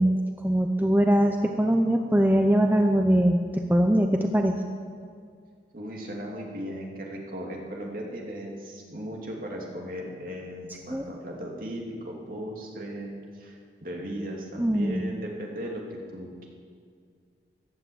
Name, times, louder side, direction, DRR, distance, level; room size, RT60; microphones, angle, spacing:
voice 1, 0.0-4.6 10.9-11.0 14.6-15.1, equal, 10° right, 4 dB, 0.6 m, -22 dB
voice 2, 5.7-15.8 16.1-16.5, equal, 50° right, -1 dB, 2.8 m, -37 dB
15.5 x 12.0 x 7.9 m, 2.1 s
head